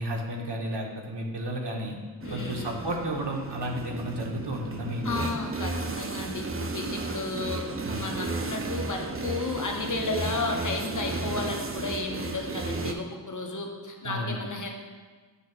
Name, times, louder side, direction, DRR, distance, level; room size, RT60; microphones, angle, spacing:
voice 1, 0.0-2.0 2.3-5.3 7.8-8.1 14.0-14.4, right 1 dB, 70° right, 0 dB, 1.1 m, -32 dB
voice 2, 2.2-2.8 5.0-14.7, left 3 dB, 45° left, 2 dB, 1.0 m, -33 dB
sound 1, 2.2-12.9, right 3 dB, 30° right, 0.5 m, -34 dB
8.2 x 2.8 x 6.0 m, 1.4 s
wide cardioid pair, 65°, 43 cm